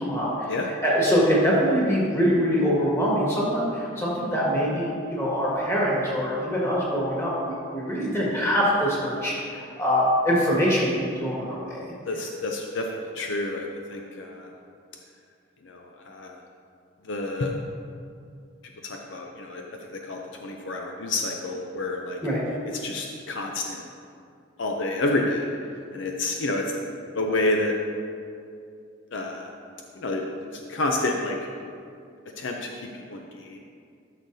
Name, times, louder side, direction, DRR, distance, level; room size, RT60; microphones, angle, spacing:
voice 1, 0.0-0.5 0.8-11.9 22.2-22.4, equal, 15° left, -6 dB, 1.7 m, -24 dB
voice 2, 12.0-14.5 15.6-16.4 17.0-17.5 18.8-22.2 22.8-23.9 24.6-25.5 25.9-26.8 27.1-27.8 29.1-29.5 30.0-31.4 32.4-33.6, left 2 dB, 65° left, 1 dB, 0.6 m, -29 dB
12.0 x 6.4 x 2.7 m, 2.4 s
head